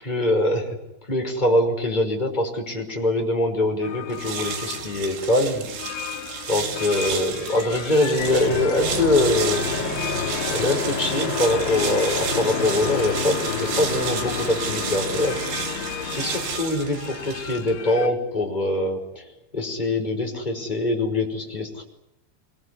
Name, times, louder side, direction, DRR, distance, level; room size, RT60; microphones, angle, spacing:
voice 1, 0.0-0.8 1.1-5.7 6.5-15.4 16.1-21.8, left 1 dB, 10° left, 1 dB, 5.1 m, -24 dB
sound 1, 3.8-18.1, left 10 dB, 85° left, 4.1 m, -37 dB
sound 2, 4.1-17.8, right 7 dB, 75° right, 5.1 m, -32 dB
sound 3, 8.2-16.6, left 4 dB, 30° left, 2.7 m, -29 dB
26.0 x 21.5 x 9.8 m, 0.85 s
omnidirectional pair, 5.1 m